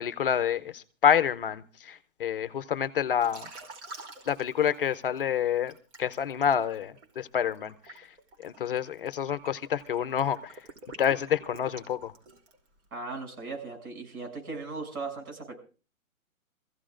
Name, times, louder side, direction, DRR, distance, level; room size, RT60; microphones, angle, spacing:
voice 1, 0.0-3.5 4.3-5.7 6.0-8.1 8.4-10.6 11.0-12.1, left 8 dB, 40° left, 13 dB, 0.6 m, -28 dB
Liquid, 3.2-5.2 5.7-12.7, right 3 dB, 50° right, 2.9 m, -47 dB
voice 2, 12.9-15.5, right 4 dB, 90° right, 2 dB, 7.1 m, -38 dB
24.0 x 15.5 x 2.5 m, 0.36 s
hypercardioid pair, 160°, 42 cm